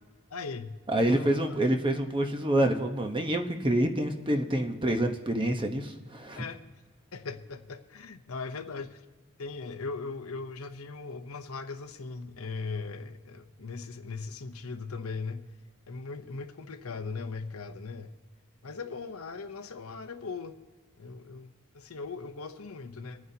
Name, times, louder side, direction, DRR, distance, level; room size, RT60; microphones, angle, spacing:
voice 1, 0.3-0.8 1.1-1.4 6.4-6.6 7.1-9.0 9.4-15.5 15.9-18.1 18.6-20.6 21.0-23.3, left 4 dB, 75° left, 8 dB, 0.8 m, -39 dB
voice 2, 0.9-6.4, right 1 dB, 25° right, 4 dB, 1.0 m, -27 dB
25.5 x 9.5 x 2.8 m, 1.4 s
head